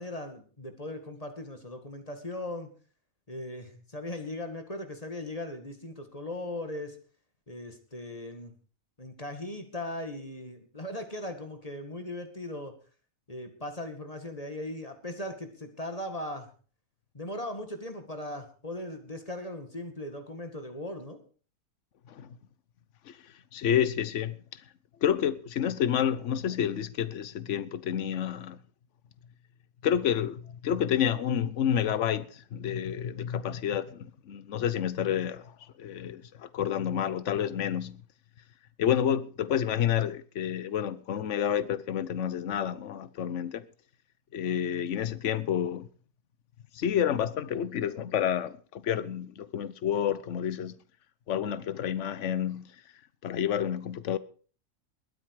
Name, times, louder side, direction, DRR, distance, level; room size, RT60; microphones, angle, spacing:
voice 1, 0.0-2.7 3.3-7.0 7.5-8.5 9.0-12.7 13.3-16.5 17.1-21.2, left 1 dB, 25° left, 2.1 m, -38 dB
voice 2, 23.1-24.6 25.0-28.6 29.8-38.0 38.8-43.6 44.3-45.9 46.7-50.8 51.3-52.7 53.2-54.2, left 9 dB, 55° left, 1.1 m, -29 dB
21.5 x 9.4 x 4.8 m
omnidirectional pair, 1.7 m